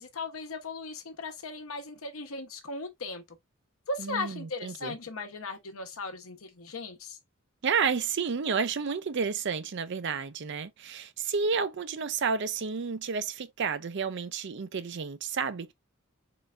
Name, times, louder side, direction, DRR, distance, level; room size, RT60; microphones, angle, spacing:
voice 1, 0.0-3.2 3.9-7.2, left 3 dB, 80° left, 1.0 m, -37 dB
voice 2, 4.0-4.9 7.6-15.7, right 5 dB, 55° right, 0.5 m, -31 dB
3.8 x 3.3 x 2.4 m
head